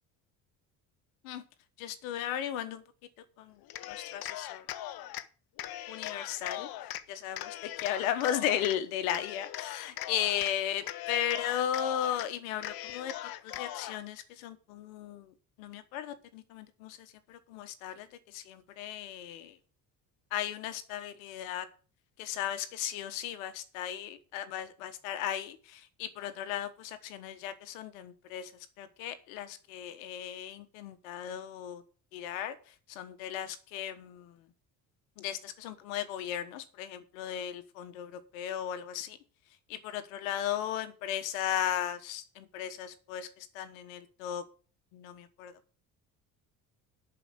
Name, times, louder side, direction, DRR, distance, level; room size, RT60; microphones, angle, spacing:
voice 1, 1.8-2.8 3.4-3.6 3.9-4.7 5.9-6.7 7.1-19.6 20.3-21.7 22.2-28.5 28.8-31.8 32.1-34.5 35.2-39.2 39.7-44.4 44.9-45.5, left 10 dB, 90° left, 11 dB, 1.3 m, -36 dB
Cheering, 3.6-5.3 5.6-7.0 7.3-8.8 9.1-10.5 10.8-12.3 12.6-14.0, left 13 dB, 60° left, 0.9 m, -40 dB
11.0 x 4.9 x 8.4 m, 0.38 s
supercardioid pair, 75°, 40 cm